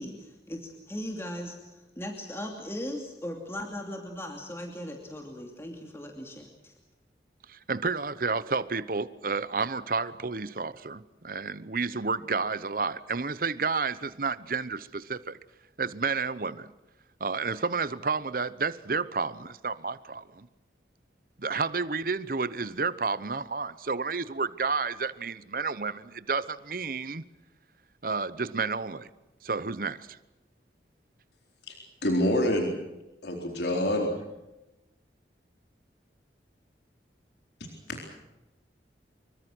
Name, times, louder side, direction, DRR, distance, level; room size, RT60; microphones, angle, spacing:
voice 1, 0.0-6.7, left 1 dB, 15° left, 2.7 m, -38 dB
voice 2, 7.5-15.4 15.8-16.7 17.2-20.5 21.4-27.2 28.0-29.1 29.4-30.2, right 4 dB, 50° right, 0.9 m, -31 dB
voice 3, 32.0-32.7 33.2-34.1 37.9-38.1, left 1 dB, 75° left, 4.1 m, -26 dB
25.5 x 24.0 x 6.2 m
head